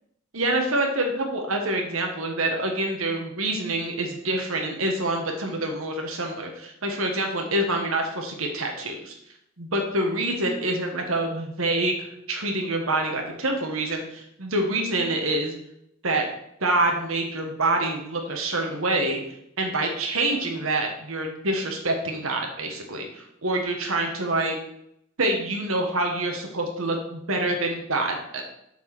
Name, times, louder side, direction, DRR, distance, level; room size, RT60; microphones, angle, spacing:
voice 1, 0.3-9.1 9.6-15.5 16.0-16.2 16.6-19.2 19.6-24.6 25.2-28.4, right 2 dB, 90° right, 2 dB, 1.4 m, -26 dB
7.6 x 4.5 x 6.0 m, 0.76 s
head